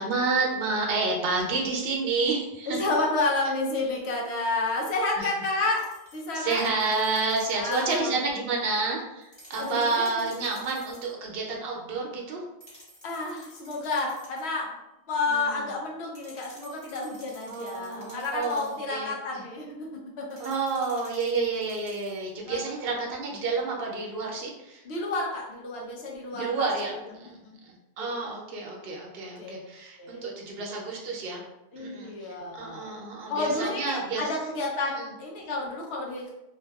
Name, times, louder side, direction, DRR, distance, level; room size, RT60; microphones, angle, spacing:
voice 1, 0.0-2.8 5.1-5.3 6.3-12.4 15.3-15.7 17.5-19.4 20.4-24.8 26.3-27.4 27.6-31.4 31.8-32.1 32.5-34.3 35.0-35.1, right 3 dB, 65° right, -1 dB, 0.8 m, -30 dB
voice 2, 2.7-6.6 7.5-8.1 9.6-10.3 13.0-14.8 15.1-20.5 22.5-22.6 24.8-26.7 27.2-27.4 28.0-28.1 29.4-29.6 30.0-30.3 31.7-32.9 33.3-36.3, left 2 dB, 75° left, -2 dB, 0.9 m, -30 dB
sound 1, 5.8-8.1 9.2-11.2 12.6-14.6 16.1-18.9 20.3-22.3, equal, 20° left, 0.6 m, -52 dB
2.6 x 2.3 x 2.2 m, 0.93 s
omnidirectional pair, 1.1 m